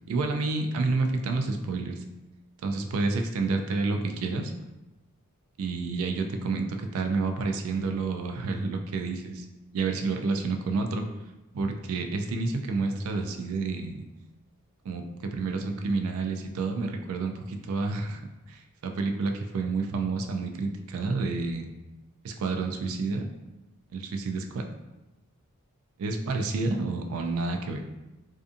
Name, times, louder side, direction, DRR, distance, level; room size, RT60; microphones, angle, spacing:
voice 1, 0.1-2.0 2.6-4.5 5.6-9.5 9.7-11.0 11.5-14.0 14.8-18.2 18.5-21.7 22.2-23.3 23.9-24.6 26.0-27.8, right 3 dB, 70° right, 5 dB, 0.3 m, -29 dB
2.5 x 2.4 x 2.4 m, 1.0 s
head